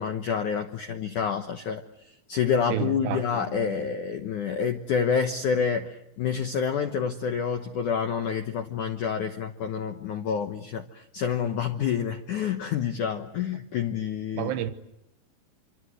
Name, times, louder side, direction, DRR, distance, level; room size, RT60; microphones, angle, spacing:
voice 1, 0.0-1.8 2.3-14.5, left 7 dB, 75° left, 1.8 m, -28 dB
voice 2, 2.7-3.8 14.3-14.7, right 12 dB, 75° right, 3.1 m, -31 dB
27.0 x 25.5 x 8.0 m
omnidirectional pair, 5.3 m